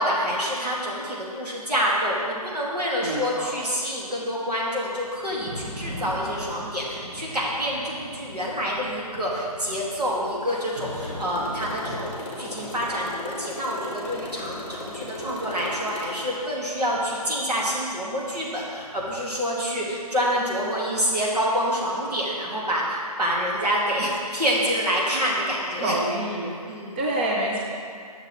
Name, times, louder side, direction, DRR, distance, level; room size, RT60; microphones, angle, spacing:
voice 1, 0.0-26.0 26.7-27.0, equal, 80° right, -4 dB, 2.0 m, -27 dB
voice 2, 3.0-3.6 25.8-26.7 27.0-27.6, right 1 dB, 15° right, -2 dB, 0.4 m, -27 dB
Thunder / Rain, 5.0-20.8, equal, 65° right, 2.0 m, -42 dB
Motorcycle, 10.4-16.3, left 2 dB, 15° left, 0.9 m, -38 dB
9.3 x 6.6 x 3.1 m, 2.3 s
figure-of-eight pair, 155°, 20 cm